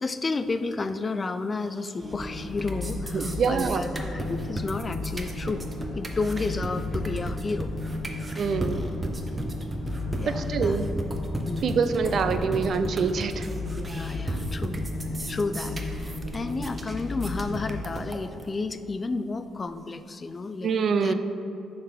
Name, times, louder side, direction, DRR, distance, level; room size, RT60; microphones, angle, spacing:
voice 1, 0.0-5.7 6.0-7.7 10.2-10.9 11.5-11.8 13.7-14.8 15.3-21.1, left 3 dB, 30° left, 11 dB, 0.3 m, -32 dB
sound 1, 1.8-2.3 2.5-18.5, right 1 dB, 25° right, 0.7 m, -35 dB
sound 2, 2.0-17.7, left 2 dB, 55° left, 1.1 m, -34 dB
voice 2, 3.1-3.9 8.4-8.9 10.3-10.9 11.6-13.5 20.6-21.1, right 5 dB, 60° right, 9 dB, 0.4 m, -25 dB
6.4 x 4.0 x 5.1 m, 2.8 s
cardioid pair, 90°, 0 cm